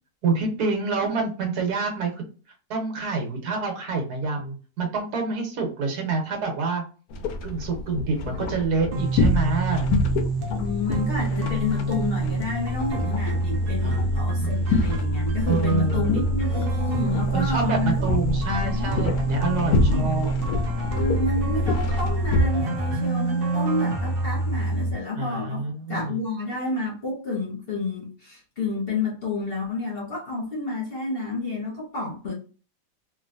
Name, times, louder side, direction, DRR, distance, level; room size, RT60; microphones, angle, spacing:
voice 1, 0.2-2.2 2.7-6.8 7.4-9.9 13.8-14.5 15.5-16.2 17.3-20.3 25.2-26.2, right 4 dB, 75° right, 1.5 m, -27 dB
Moored sailboat interior in strong breeze, 7.1-22.5, left 2 dB, 75° left, 1.0 m, -27 dB
sound 1, 8.9-24.9, right 2 dB, 55° right, 0.6 m, -26 dB
voice 2, 10.5-18.9 19.9-20.3 20.9-25.6 25.9-32.3, left 3 dB, 45° left, 0.9 m, -30 dB
3.1 x 2.5 x 2.5 m
omnidirectional pair, 1.7 m